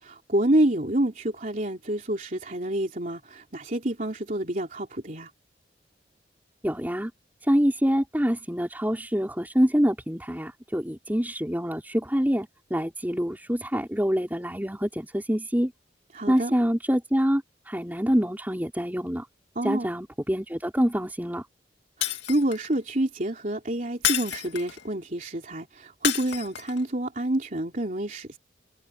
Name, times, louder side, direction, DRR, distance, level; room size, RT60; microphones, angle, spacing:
voice 1, 0.0-5.3 16.1-16.5 19.6-19.9 22.0-28.4, right 1 dB, 45° right, 3.5 m, -28 dB
voice 2, 6.6-7.1 7.4-15.7 16.3-19.3 19.6-21.5, equal, 10° right, 5.2 m, -26 dB
Shatter, 22.0-22.7 24.0-24.9 26.0-26.8, left 11 dB, 80° left, 2.4 m, -29 dB
head